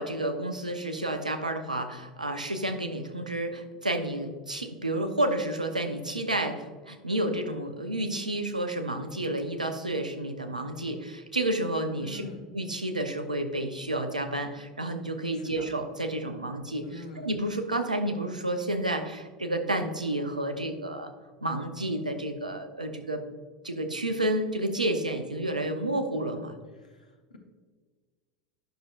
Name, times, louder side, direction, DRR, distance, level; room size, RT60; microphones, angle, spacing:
voice 1, 0.0-12.2 12.5-21.1 21.4-23.2 23.6-26.5, right 1 dB, 90° right, 6 dB, 0.7 m, -30 dB
voice 2, 12.0-12.4 15.3-15.6 16.8-17.3 26.8-27.4, left 2 dB, 80° left, 2 dB, 1.2 m, -44 dB
10.5 x 6.3 x 2.4 m, 1.5 s
figure-of-eight pair, 80°, 4 cm